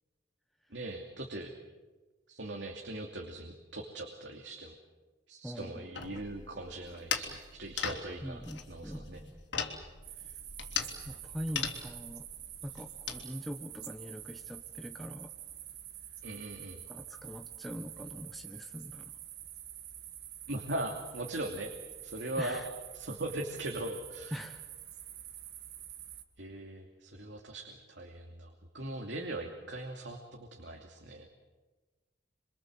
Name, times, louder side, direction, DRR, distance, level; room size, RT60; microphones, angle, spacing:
voice 1, 0.7-1.5 2.3-4.7 5.3-8.4 8.7-9.2 16.2-16.8 20.5-21.7 22.0-22.6 22.9-24.3 26.4-31.3, right 1 dB, 70° right, 2 dB, 2.7 m, -40 dB
voice 2, 5.4-5.9 8.2-9.4 10.1-10.4 11.0-12.3 12.6-15.3 16.9-19.1 22.4-22.7 24.3-24.7, equal, ahead, 4 dB, 1.3 m, -43 dB
sound 1, 5.9-13.2, left 7 dB, 70° left, 3.4 m, -39 dB
sound 2, 10.0-26.2, right 11 dB, 55° right, 2.1 m, -47 dB
28.0 x 24.5 x 7.8 m, 1.2 s
head